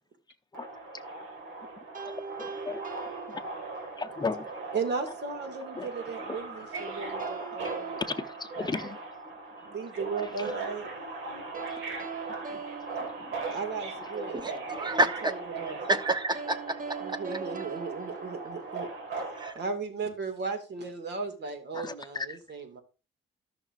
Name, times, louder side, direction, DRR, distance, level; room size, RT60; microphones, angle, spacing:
Subway metro underground, 0.5-19.5, right 3 dB, 75° right, 2.3 m, -39 dB
sound 1, 1.9-4.1 6.7-9.2 11.5-14.1 16.3-19.2, right 6 dB, 45° right, 1.0 m, -42 dB
voice 1, 2.0-2.8 3.3-3.4 3.8-4.5 5.8-5.9 6.3-6.4 7.4-9.0 10.4-10.5 12.5-12.6 13.2-13.6 21.7-22.4, left 4 dB, 20° left, 0.8 m, -36 dB
voice 2, 4.7-8.0 9.7-10.9 13.5-14.7 15.2-15.8 17.0-18.9 19.5-22.8, right 4 dB, 60° right, 2.3 m, -36 dB
voice 3, 14.3-15.4 15.9-16.8 17.1-17.2 19.3-19.5, right 2 dB, 20° right, 1.2 m, -28 dB
14.0 x 6.0 x 2.6 m
cardioid pair, 90°, 20 cm